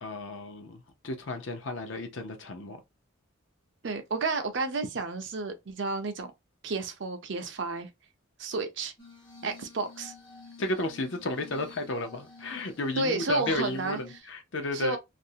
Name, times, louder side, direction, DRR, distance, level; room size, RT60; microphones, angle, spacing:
voice 1, 0.0-2.8 10.6-15.0, left 2 dB, 60° left, 0.6 m, -33 dB
voice 2, 3.8-6.3 6.6-7.9 8.4-8.9 9.4-10.1 13.0-14.0 14.7-15.0, right 3 dB, 60° right, 0.5 m, -31 dB
Glass, 9.0-14.2, left 4 dB, 25° left, 0.6 m, -50 dB
2.5 x 2.0 x 2.7 m
head